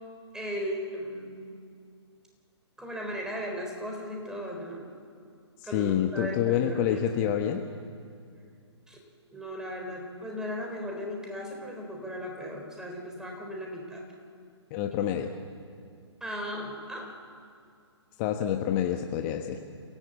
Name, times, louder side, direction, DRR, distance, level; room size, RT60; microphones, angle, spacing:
voice 1, 0.3-1.6 2.8-4.9 5.6-7.4 8.9-9.0 9.3-14.0 16.2-17.1, equal, 5° right, 0 dB, 4.1 m, -37 dB
voice 2, 5.6-7.6 14.7-15.3 18.2-19.6, left 10 dB, 30° left, 5 dB, 1.2 m, -27 dB
27.5 x 17.0 x 8.1 m, 2.3 s
figure-of-eight pair, 125°, 15 cm